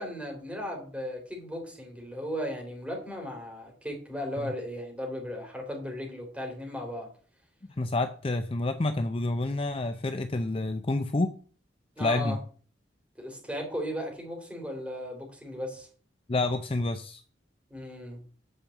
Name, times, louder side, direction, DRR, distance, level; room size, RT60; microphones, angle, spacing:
voice 1, 0.0-7.1 12.0-12.4 13.2-15.9 17.7-18.2, equal, 5° right, 0 dB, 3.4 m, -36 dB
voice 2, 7.8-11.3 12.0-12.4 16.3-17.2, left 2 dB, 30° left, 8 dB, 0.6 m, -28 dB
8.8 x 5.1 x 7.8 m, 0.42 s
head